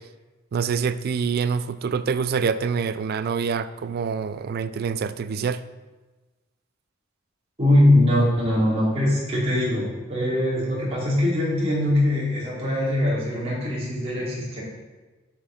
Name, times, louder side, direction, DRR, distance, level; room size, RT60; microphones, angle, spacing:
voice 1, 0.5-5.6, right 6 dB, 50° right, 13 dB, 0.4 m, -26 dB
voice 2, 7.6-14.6, left 1 dB, 30° right, -7 dB, 2.5 m, -22 dB
9.2 x 6.2 x 3.9 m, 1.2 s
head